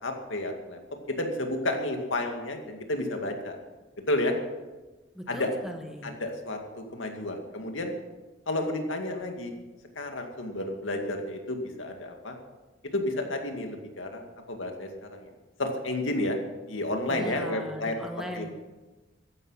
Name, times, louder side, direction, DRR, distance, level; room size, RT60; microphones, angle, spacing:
voice 1, 0.0-0.8 1.1-3.6 4.1-4.4 5.3-5.5 6.0-7.9 8.5-9.5 10.0-12.4 12.9-14.2 14.5-15.3 15.6-16.4 16.7-18.0 18.3-18.5, left 1 dB, 80° left, 3 dB, 2.2 m, -31 dB
voice 2, 5.1-6.2 17.1-18.5, equal, 5° right, 3 dB, 1.4 m, -38 dB
14.5 x 11.0 x 5.7 m, 1.2 s
head